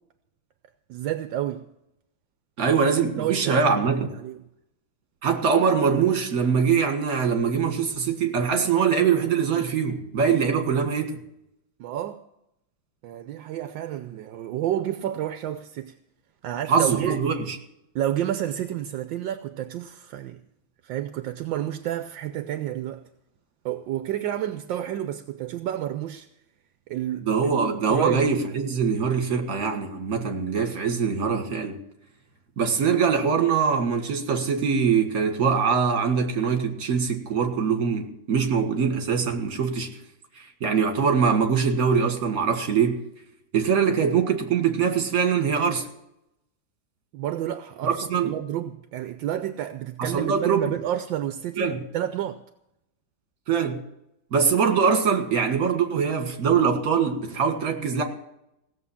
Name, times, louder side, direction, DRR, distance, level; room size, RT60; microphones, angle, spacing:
voice 1, 0.9-1.7 3.0-4.4 11.8-12.2 13.0-15.9 16.4-17.3 17.9-20.4 20.8-23.0 23.6-26.3 26.9-28.5 47.1-52.4, right 11 dB, 75° right, 1.4 m, -30 dB
voice 2, 2.6-4.2 5.2-11.2 16.7-17.6 27.2-31.8 32.6-40.0 40.4-43.0 43.5-45.9 47.8-48.3 50.0-50.7 51.6-51.8 53.5-53.8 54.3-58.0, right 6 dB, 50° right, 2.1 m, -23 dB
17.0 x 7.4 x 8.4 m
omnidirectional pair, 2.1 m